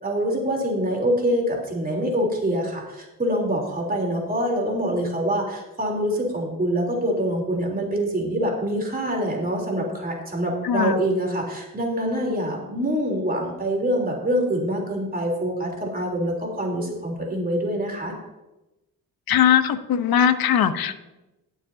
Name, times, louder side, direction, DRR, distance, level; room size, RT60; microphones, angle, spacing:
voice 1, 0.0-18.1, equal, 25° right, -1 dB, 3.6 m, -25 dB
voice 2, 10.6-11.0 19.3-21.0, left 9 dB, 70° left, 10 dB, 1.0 m, -20 dB
19.5 x 7.3 x 2.8 m, 0.99 s
cardioid pair, 65°, 37 cm